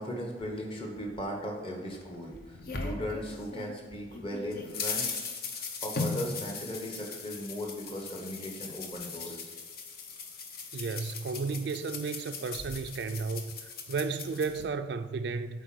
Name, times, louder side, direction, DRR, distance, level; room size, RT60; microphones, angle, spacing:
voice 1, 0.0-5.1 5.5-9.5, equal, 30° left, 1.4 m, -38 dB
sound 1, 1.9-3.8 4.1-14.6, left 4 dB, 50° left, 0.9 m, -38 dB
voice 2, 10.7-15.6, right 4 dB, 60° right, 0.4 m, -33 dB
8.1 x 4.3 x 6.2 m
head